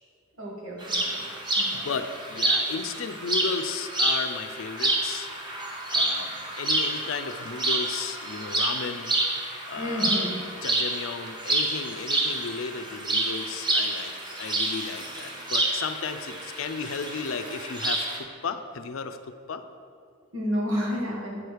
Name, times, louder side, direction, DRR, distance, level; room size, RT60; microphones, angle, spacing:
voice 1, 0.4-1.0 1.6-2.0 9.8-10.4 20.3-21.4, equal, 80° right, -3 dB, 1.6 m, -30 dB
sound 1, 0.8-18.2, right 2 dB, 25° right, 0.9 m, -28 dB
voice 2, 1.8-5.3 5.9-9.1 9.7-10.3 10.6-19.6, left 5 dB, 80° left, 9 dB, 0.5 m, -34 dB
8.6 x 4.9 x 4.7 m, 2.3 s
head